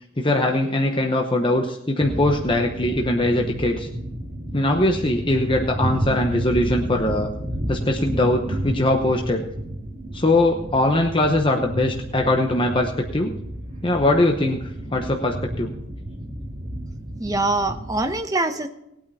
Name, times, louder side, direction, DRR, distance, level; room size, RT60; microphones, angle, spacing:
voice 1, 0.2-3.9 4.5-7.3 7.7-9.4 10.1-13.3 13.8-14.6 14.9-15.7, left 1 dB, 25° left, 2 dB, 0.9 m, -21 dB
sound 1, 2.0-18.1, right 1 dB, 30° right, 2.7 m, -31 dB
voice 2, 17.2-18.7, right 2 dB, 15° right, 6 dB, 0.9 m, -23 dB
18.5 x 8.8 x 4.2 m, 0.83 s
head